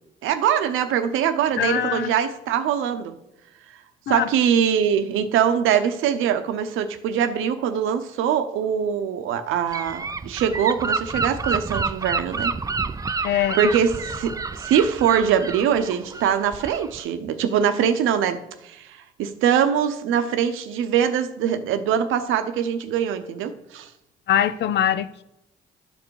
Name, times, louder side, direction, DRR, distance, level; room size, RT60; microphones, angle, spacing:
voice 1, 0.2-3.1 4.1-12.5 13.5-18.9 19.2-23.9, right 8 dB, 90° right, 0.8 m, -23 dB
voice 2, 1.6-2.1 4.1-4.3 13.2-13.7 24.3-25.2, left 10 dB, 65° left, 0.5 m, -23 dB
Gull seagull / Wind, 9.7-17.0, right 4 dB, 15° right, 0.4 m, -29 dB
12.0 x 5.3 x 4.7 m
cardioid pair, 90°, 20 cm